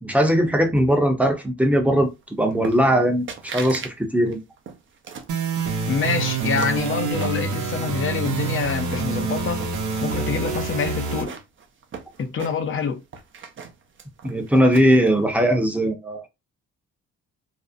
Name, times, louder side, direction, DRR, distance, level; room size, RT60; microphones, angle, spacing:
voice 1, 0.0-4.4 14.2-16.3, equal, 5° right, 0.7 m, -20 dB
sound 1, 2.6-3.0 3.3-3.9 4.3-5.4 5.9-7.8 8.2-9.2 9.5-10.3 10.8-12.8 13.1-15.1, right 6 dB, 40° right, 0.6 m, -37 dB
sound 2, 5.3-11.2, right 5 dB, 80° right, 0.7 m, -26 dB
voice 2, 5.9-9.6 10.0-11.3 12.2-13.0, left 6 dB, 45° left, 0.6 m, -26 dB
2.6 x 2.0 x 2.4 m
cardioid pair, 90°, 30 cm